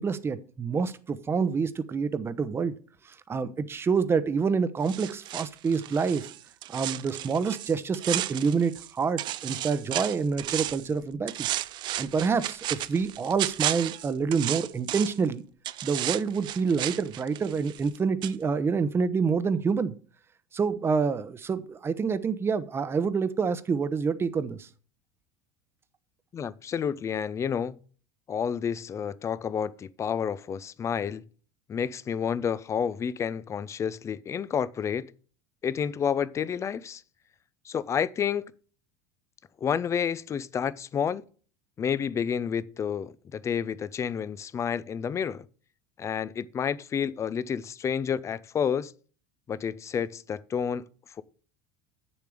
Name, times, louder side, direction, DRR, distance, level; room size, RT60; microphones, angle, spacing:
voice 1, 0.0-2.7 3.0-6.3 6.7-11.3 12.0-15.4 15.8-19.9 20.5-24.7, right 5 dB, 25° right, 0.9 m, -27 dB
sound 1, 4.9-8.9 9.2-10.9 11.3-15.3 15.6-18.0 18.2-18.3, right 14 dB, 50° right, 0.5 m, -33 dB
voice 2, 26.3-27.8 28.3-31.2 31.7-35.1 35.6-37.0 37.6-38.5 39.6-41.2 41.8-45.5 46.0-48.9 49.5-50.8, left 7 dB, 30° left, 0.5 m, -30 dB
8.4 x 7.1 x 4.9 m
supercardioid pair, 105°, 10 cm